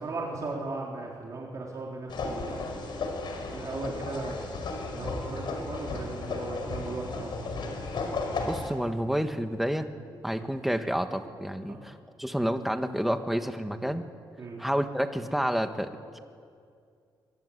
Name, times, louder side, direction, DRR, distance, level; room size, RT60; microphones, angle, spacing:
voice 1, 0.0-2.5 3.5-4.6 4.9-7.4 10.3-10.4 11.7-11.8 14.4-14.6, right 3 dB, 45° right, -2 dB, 3.8 m, -37 dB
sound 1, 2.1-8.7, left 3 dB, 65° left, 5.0 m, -34 dB
voice 2, 8.5-9.9 10.2-14.0 14.6-16.2, equal, ahead, 8 dB, 1.5 m, -29 dB
23.5 x 23.0 x 9.6 m, 2.3 s
cardioid pair, 120°, 8 cm